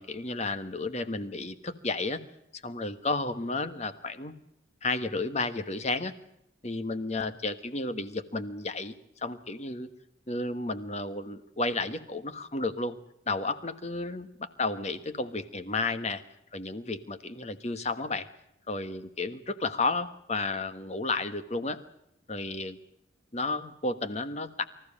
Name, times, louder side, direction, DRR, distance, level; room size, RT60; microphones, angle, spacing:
voice 1, 0.0-2.2 2.5-4.4 4.8-6.1 6.6-9.9 10.3-13.0 13.3-16.2 16.5-18.3 18.7-21.8 22.3-22.8 23.3-24.6, left 3 dB, 35° left, 11 dB, 1.4 m, -32 dB
25.5 x 14.5 x 8.6 m, 0.80 s
head